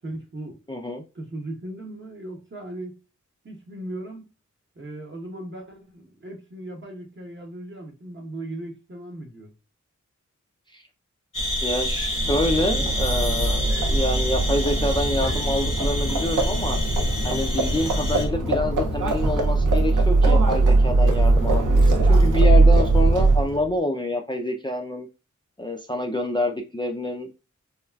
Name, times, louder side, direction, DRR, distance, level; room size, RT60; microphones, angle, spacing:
voice 1, 0.0-0.6 1.1-3.0 3.4-4.3 4.8-9.5, right 1 dB, 40° right, 0.9 m, -37 dB
voice 2, 0.7-1.0 10.7-10.8 11.6-16.8 17.2-25.1 25.6-27.3, left 1 dB, 15° left, 0.4 m, -27 dB
sound 1, 11.3-18.3, equal, 80° left, 1.0 m, -28 dB
Livestock farm animals working animals, 12.0-23.6, right 2 dB, 90° right, 0.6 m, -20 dB
3.2 x 2.3 x 2.2 m
wide cardioid pair, 65°, 31 cm